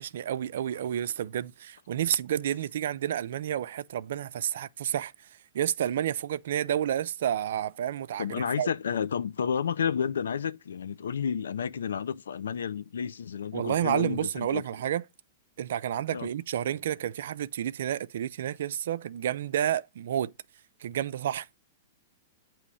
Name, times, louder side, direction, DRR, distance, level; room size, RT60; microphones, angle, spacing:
voice 1, 0.0-5.1 5.5-8.7 13.5-15.0 15.6-20.3 20.8-21.5, right 10 dB, 70° right, 0.4 m, -30 dB
voice 2, 8.2-14.6 16.1-16.3, left 7 dB, 85° left, 0.5 m, -31 dB
8.3 x 3.1 x 6.1 m
hypercardioid pair, 125°, 0 cm